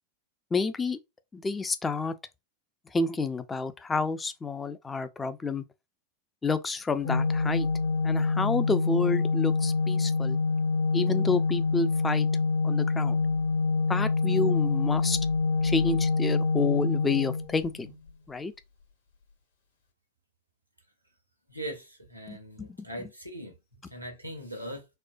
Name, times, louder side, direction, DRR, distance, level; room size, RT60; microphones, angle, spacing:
voice 1, 0.5-1.0 1.3-2.1 2.9-5.6 6.4-7.7 8.0-10.4 10.9-12.3 12.6-13.2 13.9-15.2 15.6-17.9 18.3-18.5 22.3-22.7, left 4 dB, 15° left, 0.4 m, -29 dB
Organ, 7.0-17.9, left 4 dB, 65° left, 1.5 m, -26 dB
voice 2, 21.5-24.9, equal, 90° right, 1.1 m, -40 dB
4.3 x 2.1 x 2.5 m
figure-of-eight pair, 90°, 0 cm